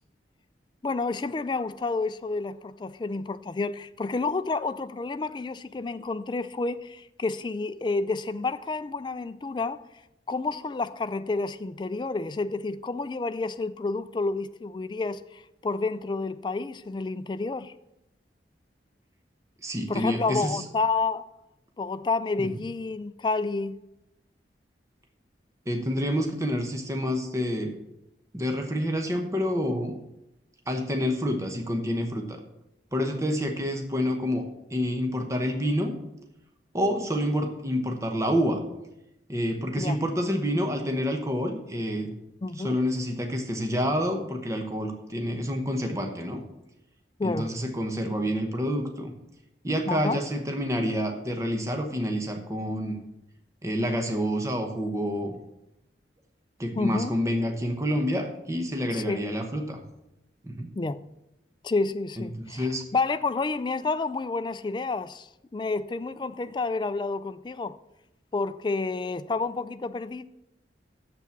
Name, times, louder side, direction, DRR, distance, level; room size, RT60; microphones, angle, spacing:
voice 1, 0.8-9.8 10.3-17.7 19.9-21.2 21.8-23.8 39.7-40.0 42.4-42.8 47.2-47.5 49.9-50.2 56.8-57.2 58.9-59.3 60.8-61.0 61.6-67.8 68.3-70.2, left 3 dB, 25° left, 0.3 m, -30 dB
voice 2, 19.6-20.6 22.4-22.5 25.7-27.7 28.3-30.0 30.7-32.4 32.9-34.4 34.7-35.9 36.7-38.6 39.3-42.1 42.6-46.4 47.2-49.1 49.6-53.0 53.6-55.4 56.6-59.8 60.4-60.7 62.5-62.8, equal, 15° right, 0.9 m, -28 dB
7.1 x 6.8 x 7.1 m
head